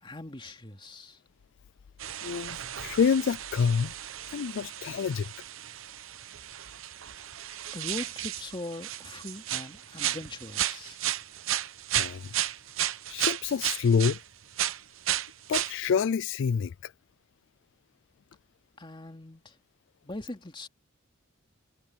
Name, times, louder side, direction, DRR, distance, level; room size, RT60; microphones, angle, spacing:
voice 1, 0.0-1.2 7.7-11.0 18.8-19.6 20.0-20.7, left 2 dB, 25° left, 2.6 m, -41 dB
sound 1, 2.0-14.2 14.5-15.8, right 12 dB, 75° right, 0.8 m, -34 dB
voice 2, 2.2-3.9 4.3-5.3 12.0-12.3 13.1-14.2 15.5-16.9, left 6 dB, 65° left, 0.3 m, -27 dB
head